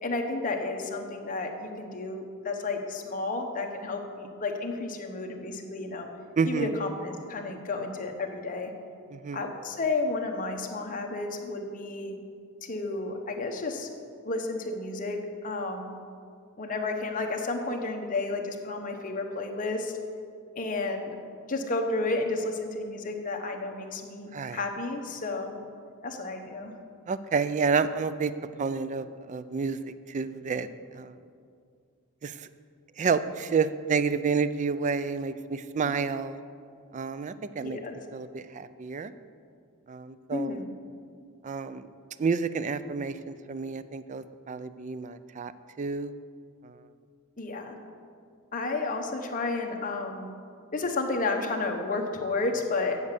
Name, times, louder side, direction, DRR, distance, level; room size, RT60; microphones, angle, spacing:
voice 1, 0.0-6.1 6.5-8.7 9.3-12.1 12.6-13.9 14.3-16.0 16.6-19.9 20.5-21.2 21.5-25.5 26.0-26.7 37.6-37.9 40.3-40.7 47.4-47.8 48.5-50.3 50.7-53.0, left 3 dB, 40° left, 3 dB, 0.9 m, -32 dB
voice 2, 6.4-6.8 9.1-9.5 24.3-24.6 27.1-28.3 28.6-31.2 32.2-32.5 33.0-36.4 36.9-37.8 38.1-39.1 39.9-40.7 41.4-41.9 42.2-45.5 45.8-46.1 46.6-46.8, right 5 dB, 35° right, 13 dB, 0.3 m, -30 dB
8.1 x 7.5 x 6.7 m, 2.3 s
head